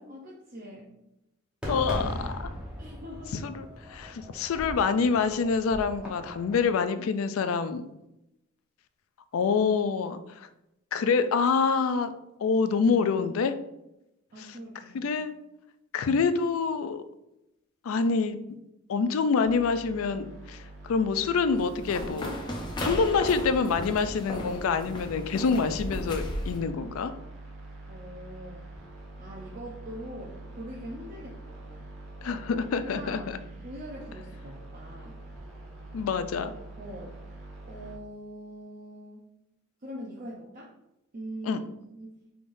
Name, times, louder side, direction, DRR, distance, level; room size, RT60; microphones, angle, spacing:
voice 1, 0.1-0.9 2.8-3.4 14.3-15.2 27.9-28.7 29.2-31.9 32.8-33.3 33.6-35.2 36.8-37.2 37.7-39.2 39.8-40.7 41.1-41.6 41.9-42.2, equal, 45° right, -4 dB, 0.7 m, -42 dB
Fireworks, 1.6-6.7, equal, 5° right, 1.0 m, -38 dB
voice 2, 1.7-2.5 3.4-7.8 9.3-10.5 10.9-12.1 12.4-13.5 14.9-15.3 15.9-17.0 17.8-18.4 18.9-22.3 22.8-27.1 32.2-33.4 35.9-36.5 41.5-41.6, left 5 dB, 85° left, 11 dB, 0.4 m, -26 dB
sound 1, 19.4-38.0, right 2 dB, 85° right, 1.5 m, -45 dB
sound 2, 21.6-26.6, equal, 20° left, 0.6 m, -35 dB
5.3 x 3.5 x 2.5 m, 0.88 s
head